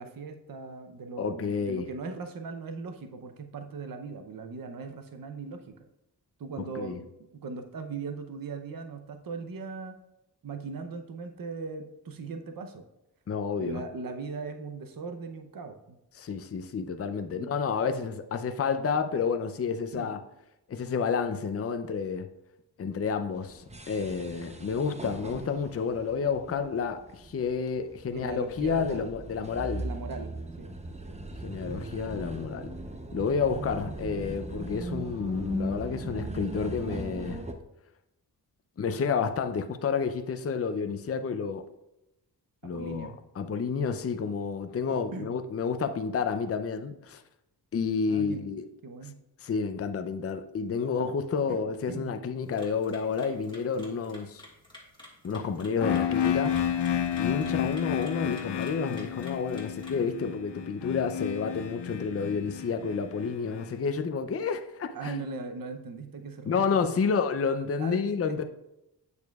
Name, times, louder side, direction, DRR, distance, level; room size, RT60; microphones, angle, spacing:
voice 1, 0.0-5.7 6.4-10.0 10.4-12.8 13.6-16.0 17.3-17.5 19.9-20.1 28.1-29.1 29.7-30.7 42.6-43.2 45.1-45.3 48.1-48.4 48.8-49.2 51.5-51.6 51.9-52.1 57.4-57.7 64.9-66.8 67.8-68.0 68.3-68.4, right 4 dB, 55° right, 0.7 m, -39 dB
voice 2, 1.2-1.9 6.8-7.0 13.3-13.8 16.2-20.2 20.7-22.3 22.8-29.8 31.4-32.7 33.1-37.4 38.8-41.6 42.6-47.2 47.7-48.6 49.4-54.4 55.2-56.6 57.2-65.2 66.5-68.4, left 5 dB, 35° left, 0.5 m, -30 dB
sound 1, 23.4-37.5, right 1 dB, 15° right, 0.7 m, -39 dB
sound 2, 52.4-60.1, left 1 dB, 10° left, 1.7 m, -52 dB
sound 3, 55.8-63.6, left 9 dB, 90° left, 0.6 m, -31 dB
8.2 x 6.8 x 2.3 m
wide cardioid pair, 80°, 40 cm